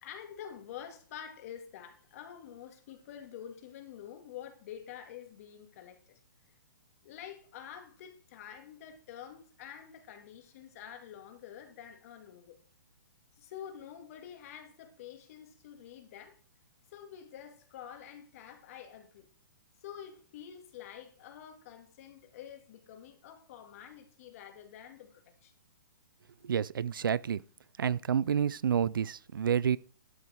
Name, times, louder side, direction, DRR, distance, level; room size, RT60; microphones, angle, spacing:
voice 1, 0.0-6.2 6.5-6.6 7.0-12.6 13.4-16.4 16.9-19.3 19.8-25.5, left 9 dB, 45° left, 2.3 m, -48 dB
voice 2, 26.4-27.4 27.8-29.8, right 8 dB, 85° right, 0.5 m, -29 dB
12.0 x 6.4 x 4.5 m
hypercardioid pair, 145°, 11 cm